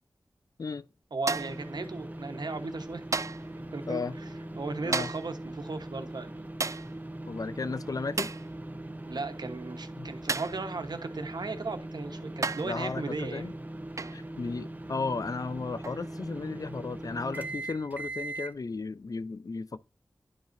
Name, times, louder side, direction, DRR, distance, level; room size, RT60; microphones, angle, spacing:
voice 1, 1.1-3.0 3.7-4.0 4.6-6.5 9.1-13.6 14.0-14.2, right 3 dB, 70° right, 1.2 m, -36 dB
sound 1, 1.3-18.5, right 1 dB, 20° right, 0.8 m, -41 dB
sound 2, 1.3-1.7 3.1-3.5 4.9-5.3 6.6-6.9 8.2-8.5 10.3-10.6 11.7-11.8 12.4-12.8 14.0-14.2 15.8-16.0, right 4 dB, 45° right, 0.4 m, -33 dB
voice 2, 7.3-8.3 10.0-10.1 12.6-13.5 14.1-19.8, left 4 dB, 55° left, 0.5 m, -34 dB
10.5 x 5.2 x 2.7 m
wide cardioid pair, 60°, 8 cm